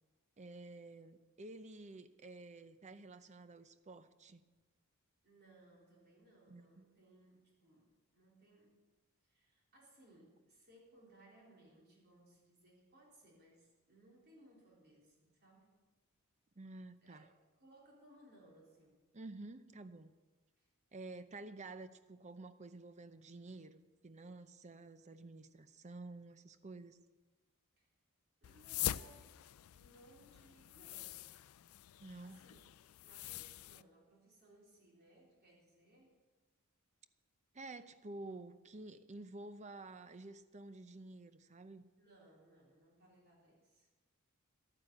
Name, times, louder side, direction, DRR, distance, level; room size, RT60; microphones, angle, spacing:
voice 1, 0.4-4.4 6.5-6.8 16.6-17.3 19.1-20.1 20.9-27.0 32.0-32.4 37.5-41.8, right 2 dB, 30° right, 12 dB, 0.6 m, -51 dB
voice 2, 5.2-8.8 9.2-15.8 17.0-17.2 17.6-19.0 20.6-20.7 27.8-28.0 28.4-29.4 29.7-31.4 32.2-32.6 33.0-36.2 41.9-43.9, right 1 dB, 50° right, -2 dB, 3.8 m, -64 dB
sound 1, 28.4-33.8, left 13 dB, 75° left, 0.4 m, -44 dB
11.5 x 9.5 x 7.5 m, 1.3 s
head